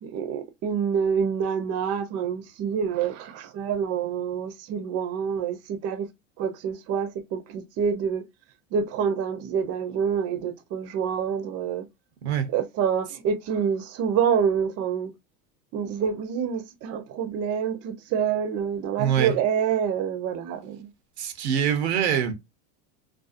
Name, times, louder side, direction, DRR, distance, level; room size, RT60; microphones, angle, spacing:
voice 1, 0.0-6.1 6.4-8.2 8.7-11.8 12.5-15.1 15.7-20.9, right 7 dB, 50° right, 0.7 m, -27 dB
voice 2, 19.0-19.3 21.2-22.3, right 9 dB, 85° right, 0.7 m, -24 dB
2.5 x 2.3 x 2.4 m
hypercardioid pair, 90°, 32 cm